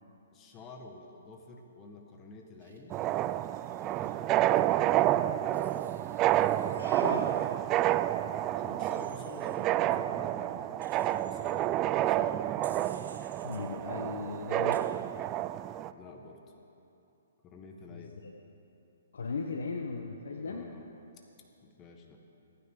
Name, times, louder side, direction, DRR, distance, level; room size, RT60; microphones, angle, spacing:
voice 1, 0.3-3.0 3.8-4.6 8.6-10.9 11.2-12.6 15.9-16.4 17.4-18.1 20.4-20.9 21.6-22.2, left 3 dB, 25° left, 2 dB, 1.6 m, -50 dB
Wild animals, 2.6-4.1 5.5-7.6 8.8-9.5 10.8-11.5 12.6-13.6 14.7-14.8, right 5 dB, 75° right, 1.9 m, -56 dB
sound 1, 2.9-15.9, right 13 dB, 25° right, 0.3 m, -29 dB
voice 2, 6.8-7.3 13.4-15.0 17.9-18.3 19.1-20.7, left 4 dB, 75° left, 3 dB, 1.0 m, -37 dB
27.0 x 9.8 x 3.8 m, 2.9 s
hypercardioid pair, 140°, 0 cm